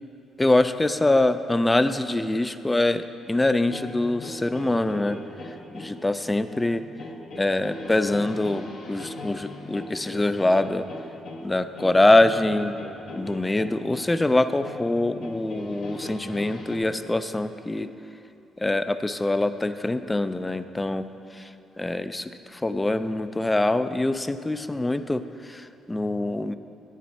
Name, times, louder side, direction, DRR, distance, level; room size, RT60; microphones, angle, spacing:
voice 1, 0.4-5.2 5.4-6.8 7.4-10.9 11.4-12.8 13.1-17.9 18.6-26.6, left 2 dB, 15° left, 11 dB, 0.3 m, -24 dB
sound 1, 3.6-16.8, left 1 dB, 75° left, 1.1 m, -40 dB
9.3 x 7.4 x 4.2 m, 2.7 s
cardioid pair, 90°, 0 cm